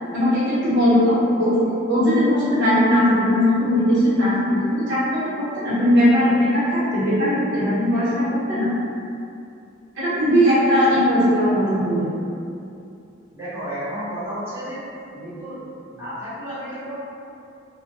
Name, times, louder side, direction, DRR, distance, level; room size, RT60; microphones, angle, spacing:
voice 1, 0.1-8.7 9.9-12.1, equal, 65° right, -12 dB, 1.0 m, -19 dB
voice 2, 13.3-14.8 15.1-15.6 15.9-17.0, equal, 15° right, -15 dB, 0.8 m, -32 dB
2.2 x 2.1 x 2.6 m, 2.6 s
head